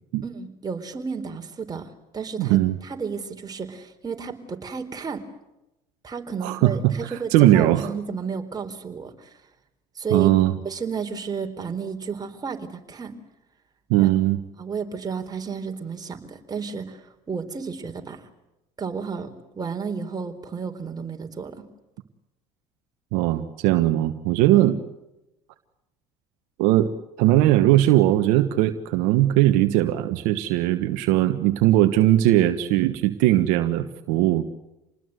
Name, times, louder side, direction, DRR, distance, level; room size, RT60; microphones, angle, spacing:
voice 1, 0.2-5.2 6.0-9.4 9.9-10.3 10.6-13.1 14.0-14.1 14.6-18.3 18.8-21.6 24.5-24.7, right 5 dB, 30° right, 4 dB, 4.1 m, -32 dB
voice 2, 2.4-2.7 6.4-7.9 10.1-10.5 13.9-14.4 23.1-24.8 26.6-26.9 27.2-34.4, right 14 dB, 75° right, 8 dB, 1.4 m, -19 dB
27.5 x 20.0 x 7.9 m, 0.94 s
hypercardioid pair, 75°, 14 cm